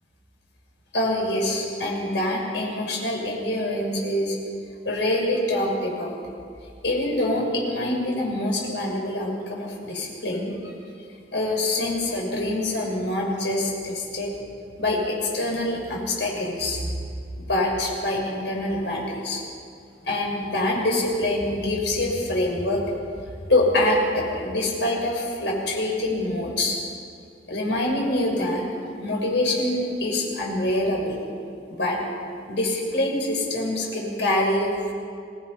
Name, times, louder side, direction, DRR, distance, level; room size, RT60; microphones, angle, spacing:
voice 1, 0.9-4.4 4.8-6.1 6.8-10.7 11.3-14.3 14.8-17.0 17.4-19.4 20.0-22.8 23.5-26.8 27.5-31.2 31.7-32.0 32.5-34.9, left 1 dB, 75° left, -1 dB, 6.4 m, -25 dB
26.5 x 20.0 x 5.8 m, 2.4 s
head